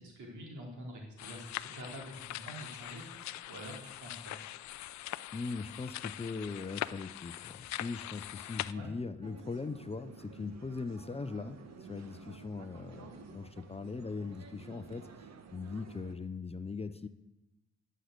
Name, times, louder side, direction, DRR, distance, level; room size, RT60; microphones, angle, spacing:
voice 1, 0.0-4.3 8.7-8.9, equal, 75° right, -1 dB, 3.9 m, -47 dB
sound 1, 1.2-8.7, left 14 dB, 65° left, 0.5 m, -42 dB
voice 2, 5.3-15.1 15.5-17.1, left 4 dB, 20° left, 11 dB, 0.6 m, -40 dB
sound 2, 9.2-16.1, right 5 dB, 60° right, 1.5 m, -52 dB
11.5 x 6.6 x 8.2 m, 0.94 s
cardioid pair, 90°, 30 cm